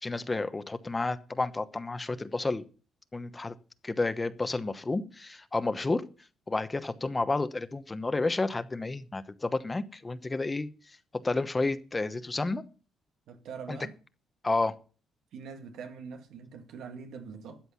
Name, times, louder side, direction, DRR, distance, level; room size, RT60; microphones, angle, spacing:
voice 1, 0.0-2.6 3.1-3.5 3.8-6.0 6.5-10.7 11.1-12.6 13.7-13.8 14.4-14.7, left 3 dB, 20° left, 1.0 m, -30 dB
voice 2, 13.3-14.0 15.3-17.6, right 6 dB, 80° right, 2.0 m, -43 dB
13.0 x 7.9 x 5.7 m
cardioid pair, 90°, 0 cm